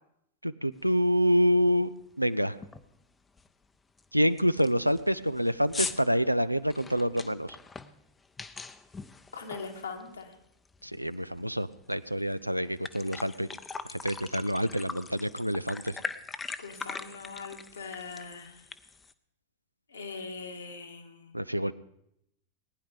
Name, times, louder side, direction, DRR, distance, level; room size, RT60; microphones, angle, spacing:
voice 1, 0.4-2.6 4.1-7.6 10.8-13.5 13.9-16.0 21.3-21.7, equal, 90° right, 15 dB, 0.4 m, -27 dB
sound 1, 1.0-1.1 1.5-1.8 2.1-2.2 2.6-2.9 3.4-3.5 4.0-4.1 4.4-10.3 10.6-11.9 12.3-12.4 12.7-19.1, left 4 dB, 15° left, 0.7 m, -41 dB
voice 2, 9.3-10.3 16.6-18.6 19.9-21.4, left 4 dB, 75° left, 3 dB, 1.9 m, -41 dB
19.0 x 10.0 x 5.1 m, 0.77 s
figure-of-eight pair, 90°, 0 cm